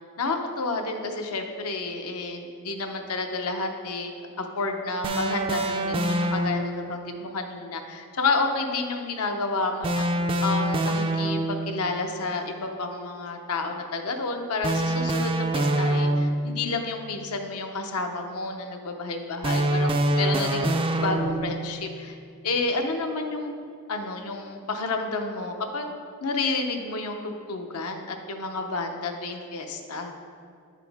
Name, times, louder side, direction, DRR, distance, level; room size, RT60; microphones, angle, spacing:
voice 1, 0.2-4.1 4.4-10.0 10.4-22.2 22.4-23.5 23.9-25.9 26.2-30.1, left 3 dB, 80° left, 4 dB, 0.8 m, -30 dB
sound 1, 5.0-6.9 9.8-11.7 14.6-16.6 19.4-21.6, right 1 dB, 25° right, 0.4 m, -25 dB
9.8 x 5.9 x 3.5 m, 2.3 s
head